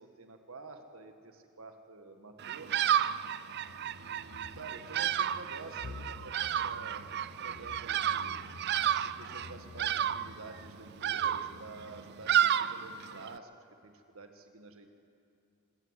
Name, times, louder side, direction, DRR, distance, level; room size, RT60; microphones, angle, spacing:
voice 1, 0.0-2.9 3.9-8.4 9.0-13.5 13.8-15.0, right 3 dB, 75° right, 6 dB, 1.6 m, -49 dB
Bird vocalization bird call bird song, 2.4-13.4, right 10 dB, 50° right, 0.4 m, -32 dB
sound 1, 3.7-12.5, left 3 dB, 50° left, 0.5 m, -51 dB
26.0 x 13.0 x 8.1 m, 2.6 s
head